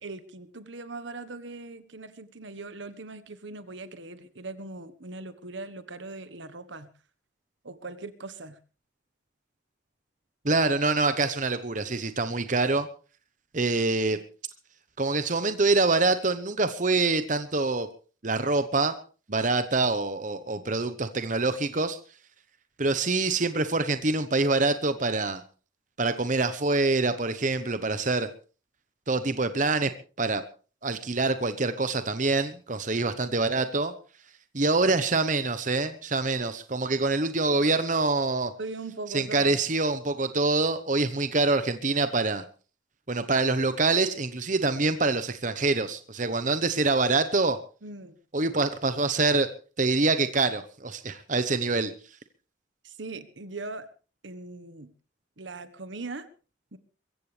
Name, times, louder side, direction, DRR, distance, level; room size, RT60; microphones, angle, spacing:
voice 1, 0.0-6.9 7.6-8.6 38.6-39.6 47.8-48.2 52.8-53.9 54.2-54.9 55.4-56.3 56.7-56.8, right 3 dB, 70° right, 13 dB, 1.3 m, -40 dB
voice 2, 10.4-12.9 13.5-14.2 15.0-17.9 18.2-18.9 19.3-22.0 22.8-25.4 26.0-28.3 29.1-29.9 30.2-30.4 30.8-33.9 34.5-38.5 39.1-42.4 43.1-47.6 48.3-49.5 49.8-51.9, right 3 dB, 40° right, 10 dB, 1.0 m, -25 dB
23.0 x 15.5 x 3.4 m, 0.37 s
head